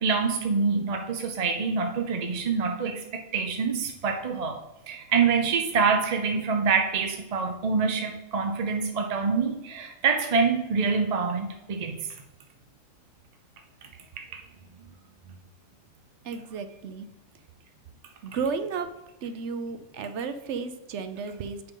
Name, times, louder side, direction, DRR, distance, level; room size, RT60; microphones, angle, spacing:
voice 1, 0.0-3.0 3.3-4.6 4.9-12.0, right 5 dB, 40° right, 4 dB, 0.6 m, -26 dB
voice 2, 16.2-17.1 18.2-18.9 19.2-21.6, right 5 dB, 65° right, 9 dB, 0.9 m, -33 dB
8.1 x 5.1 x 3.8 m, 0.98 s
omnidirectional pair, 1.3 m